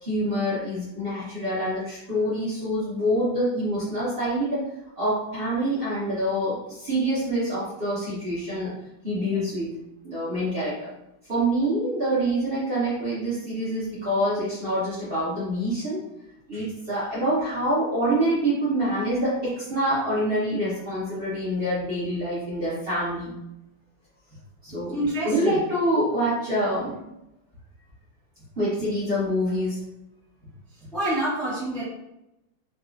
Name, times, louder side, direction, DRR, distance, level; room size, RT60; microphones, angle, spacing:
voice 1, 0.0-4.6 5.0-8.7 9.0-9.7 10.0-10.9 11.3-16.0 16.5-23.3 24.6-25.0 25.2-26.9 28.6-29.8, right 1 dB, 45° right, -9 dB, 0.8 m, -26 dB
voice 2, 24.9-25.6 30.8-31.8, right 1 dB, ahead, -8 dB, 0.3 m, -27 dB
4.0 x 2.3 x 2.4 m, 0.87 s
omnidirectional pair, 2.1 m